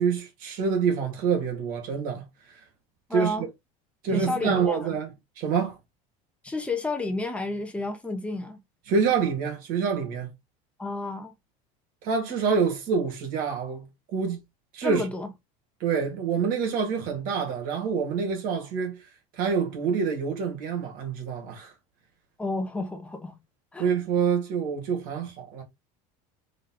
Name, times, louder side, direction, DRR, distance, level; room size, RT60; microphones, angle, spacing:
voice 1, 0.0-2.6 3.1-3.5 4.0-5.1 5.4-5.8 8.9-10.3 12.0-14.4 14.7-15.1 15.8-19.1 19.3-21.7 23.8-25.6, right 6 dB, 55° right, 2.0 m, -27 dB
voice 2, 3.1-3.4 4.1-4.9 6.4-8.6 10.8-11.3 14.8-15.3 22.4-23.4 23.7-23.9, left 2 dB, 5° left, 0.9 m, -31 dB
3.7 x 3.1 x 3.8 m
supercardioid pair, 140°, 18 cm